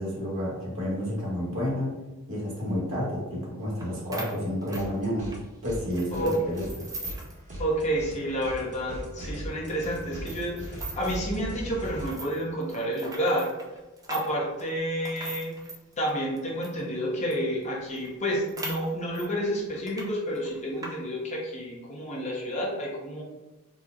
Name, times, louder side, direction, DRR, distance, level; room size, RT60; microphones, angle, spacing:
voice 1, 0.0-2.0 2.3-5.3 5.6-6.6, equal, 65° right, -4 dB, 1.1 m, -30 dB
sound 1, 3.8-3.9 4.1-5.4 5.9-7.4 7.7-7.8 8.2-8.3 8.9-9.0 9.7-11.3 11.8-16.8 17.3-17.4 17.6-17.7 18.0-19.3 19.7-20.1 20.4-20.9, right 2 dB, 15° right, 0.4 m, -41 dB
sound 2, 4.7-5.4 5.6-12.1, right 1 dB, 35° right, 0.8 m, -39 dB
voice 2, 7.6-13.5 14.1-15.6 16.0-23.2, equal, 30° left, -4 dB, 0.8 m, -30 dB
4.1 x 2.1 x 2.4 m, 1.1 s
head